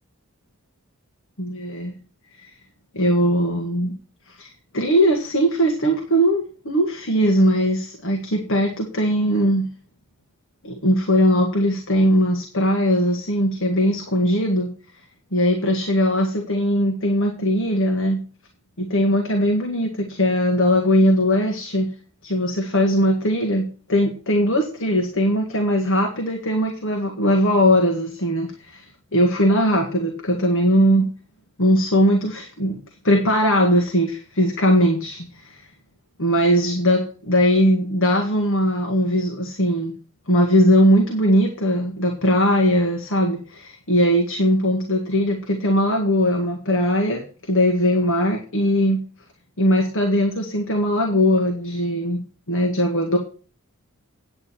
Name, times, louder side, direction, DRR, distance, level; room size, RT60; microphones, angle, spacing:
voice 1, 1.4-2.0 2.4-2.5 2.9-3.9 4.3-9.7 10.6-14.7 15.3-18.2 18.8-21.9 22.2-31.1 31.6-32.8 33.0-35.6 36.2-39.9 40.3-49.0 49.6-52.2 52.5-53.2, equal, 65° left, 2 dB, 1.7 m, -20 dB
9.6 x 8.4 x 4.4 m, 0.38 s
head